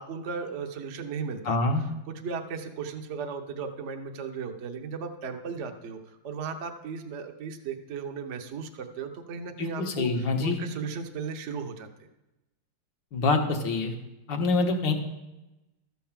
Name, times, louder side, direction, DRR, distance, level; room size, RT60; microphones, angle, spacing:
voice 1, 0.0-1.6 2.1-6.0 6.2-11.9, right 5 dB, 50° right, 5 dB, 1.0 m, -36 dB
voice 2, 1.5-1.8 9.6-10.6 13.1-13.9 14.3-14.9, left 3 dB, 75° left, 3 dB, 1.9 m, -25 dB
13.0 x 4.6 x 7.3 m, 0.98 s
omnidirectional pair, 2.0 m